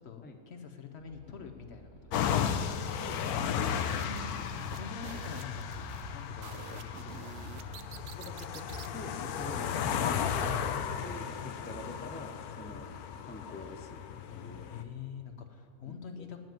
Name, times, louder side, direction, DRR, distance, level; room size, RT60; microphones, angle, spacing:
voice 1, 0.0-2.4 3.5-5.9 6.1-7.8 14.2-16.4, left 6 dB, 55° left, 6 dB, 0.8 m, -46 dB
sound 1, 1.0-10.6, right 2 dB, 20° right, 0.9 m, -55 dB
sound 2, 2.1-14.8, left 8 dB, 80° left, 1.1 m, -35 dB
voice 2, 2.9-3.7 8.0-8.7 8.9-10.1 10.3-10.6 11.0-12.9 13.2-14.0 14.3-14.8 15.8-16.3, left 1 dB, 15° left, 4 dB, 0.3 m, -46 dB
sound 3, 3.6-8.9, right 9 dB, 65° right, 0.8 m, -48 dB
9.1 x 7.8 x 9.1 m, 2.2 s
omnidirectional pair, 1.6 m